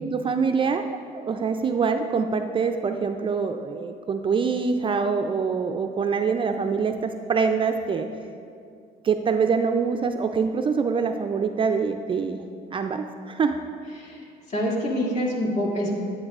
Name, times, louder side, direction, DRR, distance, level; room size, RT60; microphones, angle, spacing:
voice 1, 0.0-8.1 9.0-12.4 12.7-13.6, right 5 dB, 30° right, 6 dB, 0.3 m, -25 dB
voice 2, 14.0-16.0, equal, 45° left, -4 dB, 2.0 m, -26 dB
10.0 x 9.1 x 2.4 m, 2.3 s
cardioid pair, 110°, 17 cm